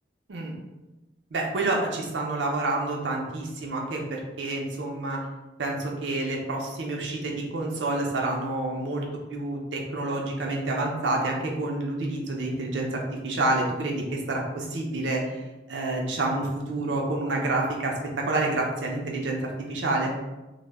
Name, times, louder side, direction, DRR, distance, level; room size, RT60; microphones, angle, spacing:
voice 1, 1.3-5.2 5.6-9.0 9.3-15.2 15.7-19.4 19.7-20.1, right 2 dB, 80° right, 0 dB, 0.5 m, -28 dB
2.1 x 2.1 x 3.3 m, 1.1 s
head